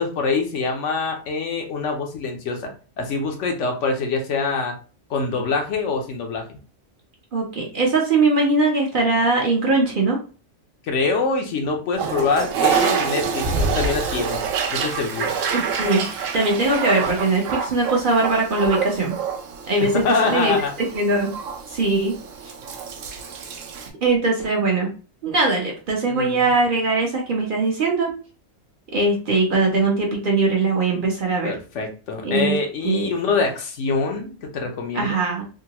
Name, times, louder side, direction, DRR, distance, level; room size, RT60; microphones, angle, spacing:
voice 1, 0.0-4.7 5.1-6.5 10.9-14.4 14.7-15.3 19.8-20.7 26.1-26.4 31.4-35.2, left 4 dB, 75° left, 3 dB, 1.0 m, -24 dB
voice 2, 7.3-10.2 15.5-16.0 16.3-19.1 19.7-19.9 20.2-21.3 21.7-22.1 24.0-24.9 25.2-28.1 28.9-31.5 32.2-32.6 32.8-33.1 34.9-35.4, right 3 dB, 50° right, -1 dB, 0.8 m, -21 dB
Toilet flush, 11.9-23.9, right 6 dB, 85° right, 0.9 m, -27 dB
3.7 x 2.1 x 2.8 m, 0.37 s
omnidirectional pair, 1.3 m